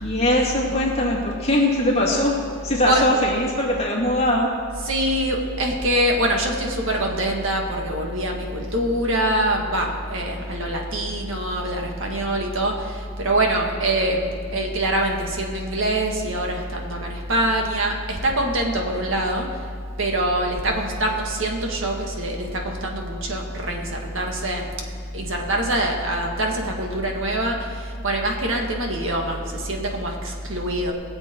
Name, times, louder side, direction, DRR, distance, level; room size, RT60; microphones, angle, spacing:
voice 1, 0.0-2.3 2.6-4.5, left 1 dB, 30° left, -3 dB, 2.4 m, -21 dB
voice 2, 4.8-19.6 20.0-24.7 25.1-30.9, right 1 dB, 60° right, 1 dB, 1.8 m, -24 dB
22.0 x 7.8 x 4.6 m, 2.3 s
head